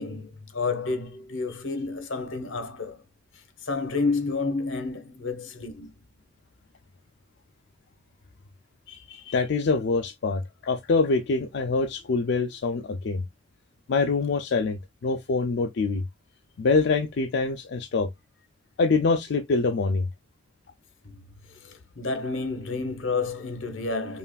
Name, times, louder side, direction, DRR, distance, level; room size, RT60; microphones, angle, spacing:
voice 1, 0.0-3.0 3.6-5.9 21.0-21.1 21.6-24.2, left 3 dB, 85° left, 1.1 m, -30 dB
voice 2, 8.9-13.2 13.9-16.0 16.6-18.1 18.8-20.0, left 4 dB, 60° left, 0.4 m, -25 dB
5.5 x 2.5 x 2.2 m
head